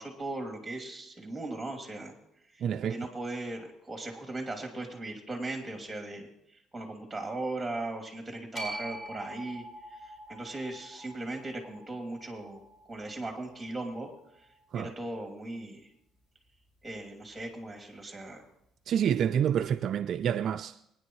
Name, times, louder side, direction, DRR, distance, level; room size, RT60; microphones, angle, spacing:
voice 1, 0.0-2.2 2.8-6.3 6.7-9.6 9.9-12.6 12.9-14.1 14.7-15.9 16.8-18.4, right 2 dB, 10° right, 2.8 m, -38 dB
voice 2, 2.6-3.1 14.7-14.9 18.9-20.9, right 9 dB, 55° right, 0.4 m, -28 dB
sound 1, 8.5-14.8, right 1 dB, 25° left, 5.2 m, -45 dB
21.5 x 10.0 x 3.1 m
cardioid pair, 120°, 0 cm